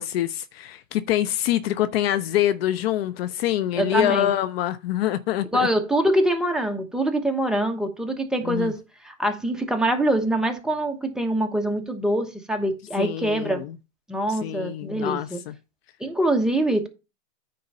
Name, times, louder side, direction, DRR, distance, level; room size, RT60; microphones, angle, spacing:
voice 1, 0.0-5.7 8.4-8.7 13.0-13.8 14.4-15.5, left 12 dB, 50° left, 0.6 m, -25 dB
voice 2, 3.8-4.3 5.5-8.8 9.0-13.6 14.1-15.4 16.0-16.9, right 1 dB, ahead, 1.1 m, -24 dB
9.6 x 3.9 x 5.4 m
hypercardioid pair, 120°, 39 cm